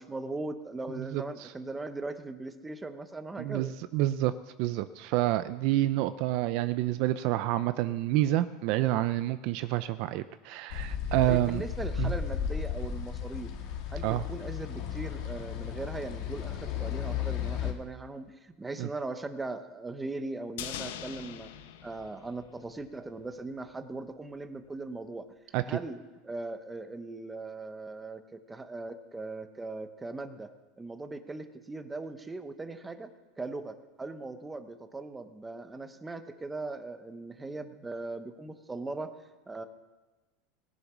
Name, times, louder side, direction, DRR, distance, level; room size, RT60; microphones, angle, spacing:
voice 1, 0.0-3.7 11.2-13.5 13.9-21.5 21.8-25.3 25.7-26.0 26.2-33.1 33.4-39.1 39.5-39.7, right 2 dB, 10° right, 9 dB, 0.8 m, -39 dB
voice 2, 1.0-1.5 3.4-4.3 4.6-11.6 12.0-12.1 14.0-14.2 18.8-18.9 25.5-25.8, right 15 dB, 45° right, 13 dB, 0.4 m, -28 dB
sound 1, 10.7-17.7, left 8 dB, 50° left, 1.5 m, -34 dB
sound 2, 20.6-23.0 23.2-23.3, left 10 dB, 75° left, 0.9 m, -42 dB
18.5 x 8.0 x 6.1 m, 1.2 s
supercardioid pair, 165°, 0 cm